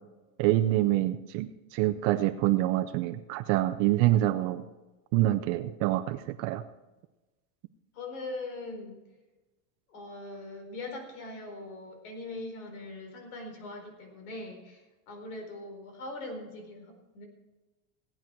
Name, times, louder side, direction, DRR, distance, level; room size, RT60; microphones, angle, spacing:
voice 1, 0.4-4.6 5.1-6.6, right 15 dB, 55° right, 8 dB, 0.7 m, -26 dB
voice 2, 7.9-9.0 9.9-17.2, left 2 dB, 80° left, 4 dB, 4.5 m, -41 dB
18.0 x 9.0 x 4.6 m, 1.1 s
supercardioid pair, 135°, 42 cm